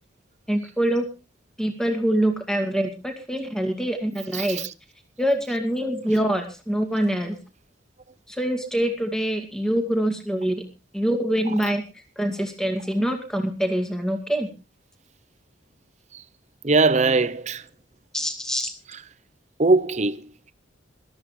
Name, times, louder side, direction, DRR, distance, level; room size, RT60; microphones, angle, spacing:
voice 1, 0.5-1.0 1.6-4.6 5.2-7.4 8.3-10.6 10.9-11.8 12.2-14.5 18.1-18.7, right 1 dB, 5° left, 2.3 m, -25 dB
voice 2, 4.3-4.7 16.1-16.2 16.6-17.7 18.9-19.0 19.6-20.5, right 3 dB, 35° right, 0.7 m, -21 dB
21.5 x 13.5 x 3.2 m
head